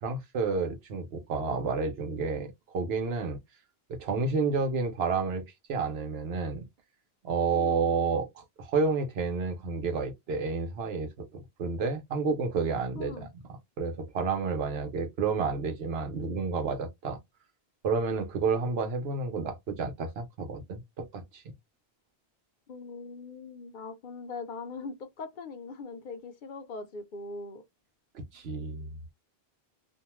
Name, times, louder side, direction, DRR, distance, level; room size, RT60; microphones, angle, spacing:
voice 1, 0.0-3.4 3.9-6.7 7.2-13.3 13.8-17.2 17.8-21.5 28.1-29.0, right 4 dB, 75° right, 1.0 m, -30 dB
voice 2, 13.0-13.3 22.7-27.6, left 4 dB, 55° left, 0.7 m, -41 dB
2.6 x 2.2 x 2.9 m
omnidirectional pair, 1.0 m